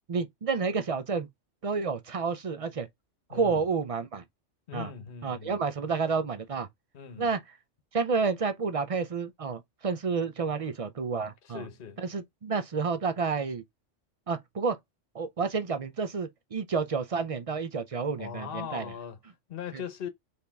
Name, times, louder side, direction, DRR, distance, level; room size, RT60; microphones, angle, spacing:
voice 1, 0.1-1.3 1.6-2.9 3.3-4.2 4.7-4.9 5.2-6.7 7.2-7.4 7.9-11.6 12.0-13.6 14.3-14.8 15.1-18.9, right 5 dB, 45° right, 0.4 m, -30 dB
voice 2, 3.3-3.6 4.7-5.6 6.9-7.3 11.4-12.0 18.2-20.1, left 8 dB, 50° left, 1.0 m, -40 dB
4.3 x 3.5 x 3.4 m
omnidirectional pair, 1.2 m